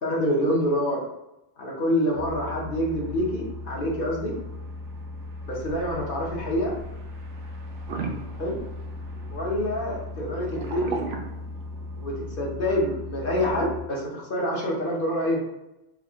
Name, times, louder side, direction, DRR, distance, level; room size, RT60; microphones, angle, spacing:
voice 1, 0.0-1.0 1.6-4.3 5.5-6.7 8.4-8.6 9.3-11.0 12.0-15.4, equal, 55° left, -2 dB, 0.9 m, -26 dB
sound 1, 2.1-13.8, left 2 dB, 90° right, 1.0 m, -37 dB
sound 2, 7.9-9.3 10.4-12.0 13.3-13.5, right 5 dB, 65° right, 0.8 m, -34 dB
3.6 x 2.3 x 3.4 m, 0.91 s
omnidirectional pair, 1.2 m